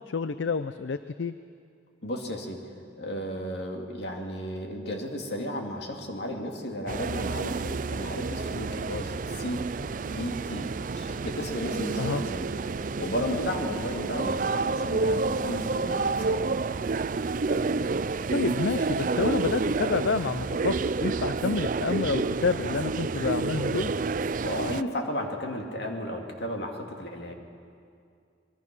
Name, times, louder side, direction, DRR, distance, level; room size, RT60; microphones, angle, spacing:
voice 1, 0.0-1.3 12.0-12.2 18.3-23.9, left 4 dB, 80° left, 12 dB, 0.5 m, -29 dB
voice 2, 2.0-9.7 10.1-12.5 13.0-16.5 24.4-27.3, equal, 60° left, 2 dB, 2.6 m, -34 dB
sound 1, 6.9-24.8, right 4 dB, 45° right, 0.4 m, -29 dB
25.0 x 21.5 x 6.1 m, 2.4 s
head